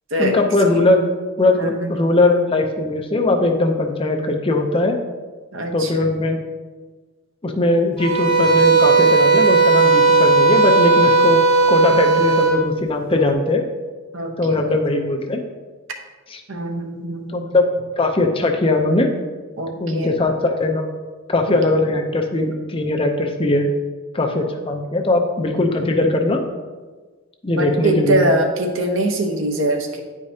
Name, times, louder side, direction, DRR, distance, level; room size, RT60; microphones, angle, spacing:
voice 1, 0.2-1.1 1.4-5.0 5.7-6.4 7.4-11.4 11.7-13.6 14.4-15.4 16.3-16.4 17.3-17.7 18.0-19.1 19.8-20.9 21.3-23.7 24.1-26.4 27.4-28.2, left 2 dB, 25° left, 3 dB, 0.5 m, -19 dB
voice 2, 1.5-2.0 5.5-6.1 11.9-12.2 14.1-14.4 14.7-14.8 16.5-17.6 19.6-20.2 27.5-30.0, right 1 dB, 65° right, 2 dB, 0.9 m, -23 dB
sound 1, 8.0-12.6, right 3 dB, 80° right, 2.0 m, -15 dB
9.9 x 4.9 x 2.7 m, 1.4 s
head